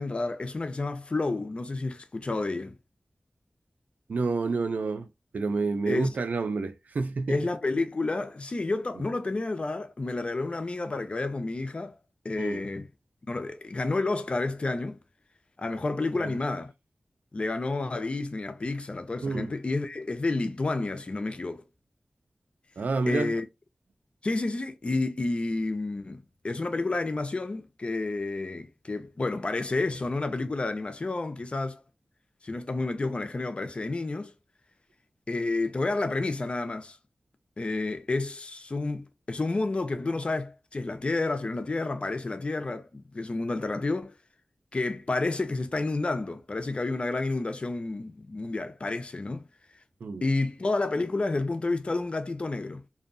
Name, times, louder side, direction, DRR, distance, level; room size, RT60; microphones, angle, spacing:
voice 1, 0.0-2.8 5.9-6.2 7.3-11.9 12.2-12.9 13.3-15.0 15.6-16.7 17.3-21.6 23.1-23.5 24.2-31.8 32.4-34.3 35.3-37.0 37.6-44.1 44.7-49.5 50.2-52.8, left 2 dB, 45° left, 0.4 m, -30 dB
voice 2, 4.1-5.1 5.3-7.4 12.4-12.6 16.1-16.3 19.2-19.5 22.8-23.3 50.0-50.2, right 4 dB, 80° right, 0.4 m, -29 dB
2.6 x 2.2 x 2.5 m
wide cardioid pair, 70°, 3 cm